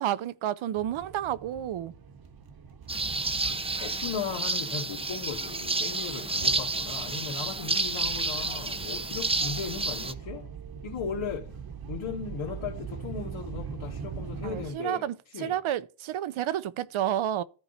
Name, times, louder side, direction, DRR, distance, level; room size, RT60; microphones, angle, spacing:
voice 1, 0.0-1.9 14.4-17.4, right 11 dB, 75° right, 0.8 m, -30 dB
sound 1, 0.8-14.7, right 6 dB, 45° right, 1.1 m, -42 dB
sound 2, 2.9-10.1, right 3 dB, 10° right, 0.6 m, -30 dB
voice 2, 3.4-10.5 10.8-11.5 11.9-15.1 15.3-15.6, left 6 dB, 80° left, 2.3 m, -37 dB
14.0 x 4.7 x 4.1 m
cardioid pair, 110°, 48 cm